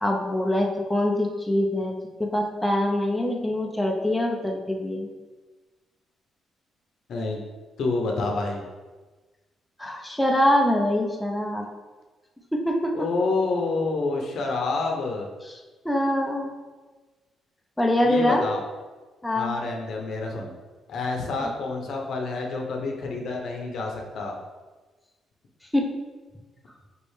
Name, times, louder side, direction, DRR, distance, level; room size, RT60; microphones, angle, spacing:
voice 1, 0.0-5.1 9.8-11.6 12.5-12.9 15.8-16.5 17.8-18.4 19.2-19.6 25.7-25.9, left 1 dB, 5° left, 0 dB, 0.6 m, -24 dB
voice 2, 7.1-7.4 7.8-8.7 12.9-15.3 18.0-18.6 19.3-20.5 20.9-24.3, left 3 dB, 65° left, 1 dB, 0.8 m, -28 dB
5.1 x 3.2 x 3.2 m, 1.3 s
cardioid pair, 90°, 0 cm